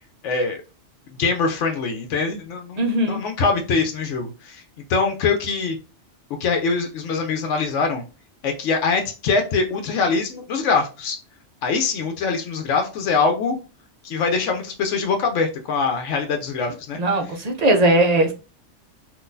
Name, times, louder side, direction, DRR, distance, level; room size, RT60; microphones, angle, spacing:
voice 1, 0.2-0.6 1.2-4.6 4.9-5.8 6.4-8.0 8.4-11.2 11.6-13.6 14.0-17.0, left 4 dB, 85° left, 0.9 m, -23 dB
voice 2, 2.8-3.2 17.0-18.3, right 1 dB, 45° right, 0.6 m, -19 dB
3.8 x 2.5 x 2.5 m
omnidirectional pair, 1.2 m